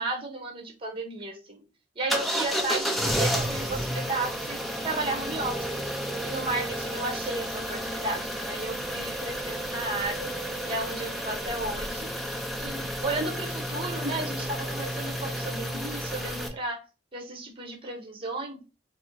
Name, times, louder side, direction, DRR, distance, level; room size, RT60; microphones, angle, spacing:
voice 1, 0.0-1.6 1.9-5.9 6.2-10.3 10.7-12.1 12.6-16.8 17.1-18.6, right 2 dB, 30° right, 2 dB, 0.9 m, -34 dB
sound 1, 2.1-16.5, equal, ahead, 0.6 m, -31 dB
4.1 x 2.1 x 4.5 m, 0.31 s
head